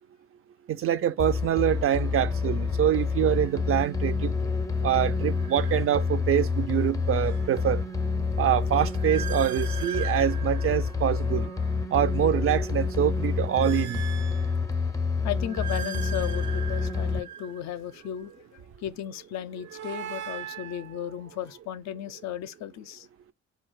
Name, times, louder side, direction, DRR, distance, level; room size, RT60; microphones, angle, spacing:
voice 1, 0.7-4.3 4.8-7.8 8.4-11.5 11.9-14.0, right 10 dB, 50° right, 0.4 m, -25 dB
sound 1, 1.2-17.2, left 4 dB, 10° left, 0.5 m, -28 dB
sound 2, 3.3-3.6 5.3-6.5 6.9-11.7 12.3-14.9 15.3-18.3 19.3-21.6, right 9 dB, 80° right, 0.8 m, -42 dB
voice 2, 15.2-23.1, left 11 dB, 65° left, 0.5 m, -35 dB
4.4 x 2.3 x 4.6 m
cardioid pair, 90°, 30 cm